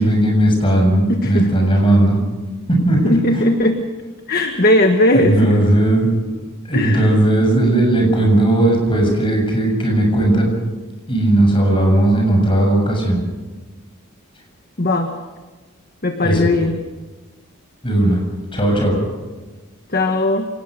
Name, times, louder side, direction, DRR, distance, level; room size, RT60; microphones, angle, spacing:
voice 1, 0.0-2.2 2.7-3.5 5.1-6.1 6.6-10.5 11.1-13.2 16.2-16.5 17.8-18.2 18.5-19.0, right 1 dB, 25° left, 1 dB, 7.3 m, -16 dB
voice 2, 3.0-3.8 4.3-5.6 6.7-7.1 14.8-15.1 16.0-16.7 19.9-20.5, left 1 dB, 40° left, 5 dB, 1.4 m, -17 dB
27.5 x 19.0 x 6.5 m, 1.3 s
head